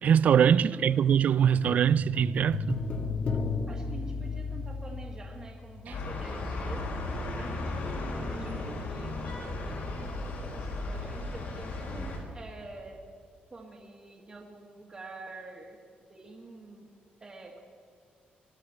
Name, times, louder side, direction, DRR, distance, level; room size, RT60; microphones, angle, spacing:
voice 1, 0.0-2.8 5.9-6.0, right 8 dB, 50° right, 0.3 m, -23 dB
voice 2, 0.7-1.0 3.7-6.9 7.4-9.4 9.6-10.2 10.5-13.0 13.5-15.8 16.1-16.9 17.2-17.6, right 2 dB, 25° right, 1.7 m, -47 dB
sound 1, 1.5-6.0 6.2-6.4, left 4 dB, 40° left, 1.3 m, -34 dB
sound 2, 5.9-12.2, left 2 dB, 70° left, 3.9 m, -35 dB
21.5 x 12.5 x 4.5 m
cardioid pair, 155°, 3 cm